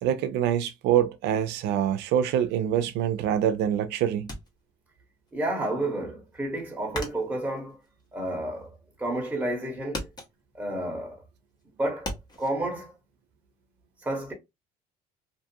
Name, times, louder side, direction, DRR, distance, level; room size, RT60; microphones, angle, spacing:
voice 1, 0.0-4.3, right 10 dB, 85° right, 0.4 m, -25 dB
sound 1, 4.3-5.3 5.6-8.9 9.2-9.6 9.9-12.5, left 1 dB, 25° left, 0.9 m, -39 dB
voice 2, 5.3-7.8 8.1-10.1 10.5-11.2 11.8-12.1 12.4-13.0 14.0-14.3, right 1 dB, 10° right, 1.0 m, -31 dB
2.5 x 2.4 x 2.6 m
cardioid pair, 110°, 17 cm